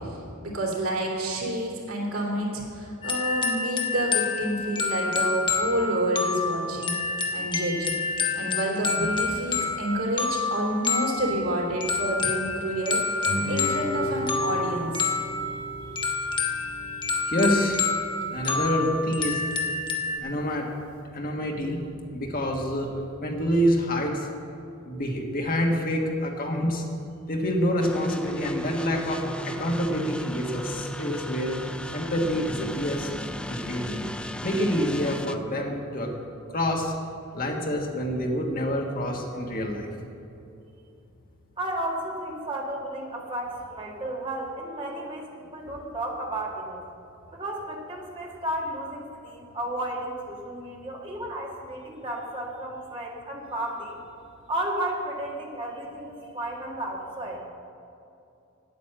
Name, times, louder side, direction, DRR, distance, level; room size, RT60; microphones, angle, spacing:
voice 1, 0.0-6.9 7.3-8.0 8.3-15.1, right 1 dB, 85° right, -2 dB, 3.1 m, -29 dB
sound 1, 3.0-20.2, left 4 dB, 20° left, 0.9 m, -28 dB
Guitar, 13.2-18.3, left 1 dB, 80° left, 1.6 m, -35 dB
voice 2, 17.2-17.8 18.3-19.4 20.2-20.7 21.1-21.8 22.1-22.9 23.2-24.3 24.8-26.8 27.3-31.6 31.9-33.1 33.5-34.0 34.4-36.1 36.5-36.9 37.3-39.9, equal, 40° left, 1 dB, 1.5 m, -27 dB
sound 2, 27.8-35.4, equal, 5° left, 0.3 m, -35 dB
voice 3, 41.6-46.8 47.3-54.0 54.5-57.4, right 1 dB, 25° right, -2 dB, 1.8 m, -33 dB
9.4 x 9.0 x 7.7 m, 2.7 s
head